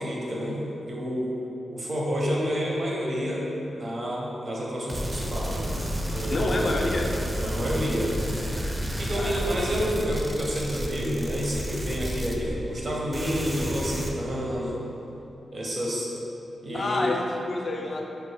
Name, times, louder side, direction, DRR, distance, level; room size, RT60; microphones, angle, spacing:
voice 1, 0.0-1.3 1.7-3.4 3.7-5.6 6.1-6.7 7.4-8.1 9.0-14.8 15.5-16.1 16.6-17.1, equal, 50° right, -3 dB, 0.7 m, -29 dB
sound 1, 4.9-12.8 13.1-14.1, equal, 15° right, 0.4 m, -31 dB
voice 2, 6.3-7.1 9.2-9.6 16.7-18.0, left 2 dB, 55° left, 0 dB, 0.4 m, -28 dB
4.1 x 2.0 x 3.3 m, 3.0 s
cardioid pair, 50°, 0 cm